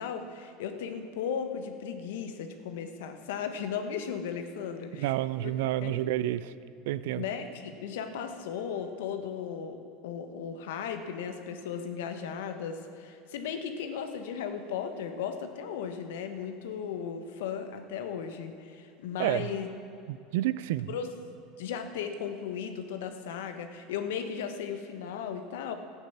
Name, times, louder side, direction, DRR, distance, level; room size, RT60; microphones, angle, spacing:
voice 1, 0.0-5.1 5.4-5.5 5.8-6.0 7.2-19.7 20.9-21.1 21.6-25.7, left 7 dB, 80° left, 7 dB, 1.2 m, -36 dB
voice 2, 4.9-6.5 6.9-7.2 19.2-19.5 20.1-21.0, right 14 dB, 75° right, 16 dB, 0.4 m, -29 dB
13.5 x 8.8 x 7.2 m, 2.7 s
supercardioid pair, 110°, 0 cm